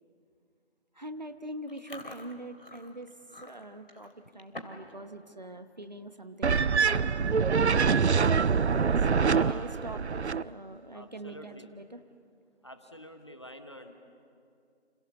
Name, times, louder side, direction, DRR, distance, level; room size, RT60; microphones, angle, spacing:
voice 1, 0.9-3.1 3.4-7.5 9.0-12.0, right 1 dB, 40° right, 10 dB, 1.0 m, -43 dB
Chewing mastication, 1.7-4.9 5.2-5.5 6.0-6.2 7.0-7.1 7.3-7.6 8.0-8.1 9.6-10.2, left 2 dB, 55° left, 2.8 m, -48 dB
sound 1, 6.4-10.4, right 5 dB, 75° right, 0.6 m, -25 dB
voice 2, 9.2-9.7 10.9-11.7 12.6-13.9, equal, 25° left, 7 dB, 1.1 m, -47 dB
29.0 x 27.5 x 7.0 m, 2.5 s
figure-of-eight pair, 165°, 33 cm